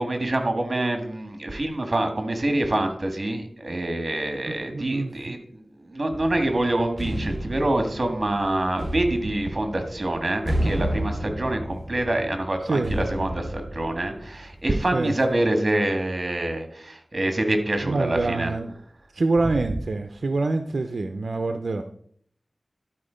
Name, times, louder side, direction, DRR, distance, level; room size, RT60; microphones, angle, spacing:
voice 1, 0.0-18.5, right 1 dB, 45° right, 6 dB, 1.7 m, -26 dB
voice 2, 4.5-5.4 12.6-13.0 14.9-15.1 17.8-18.7 19.1-21.8, right 3 dB, 75° right, 7 dB, 0.6 m, -26 dB
sound 1, 6.1-14.8, right 1 dB, ahead, 1.8 m, -31 dB
12.0 x 4.5 x 5.1 m, 0.62 s
wide cardioid pair, 65°, 0 cm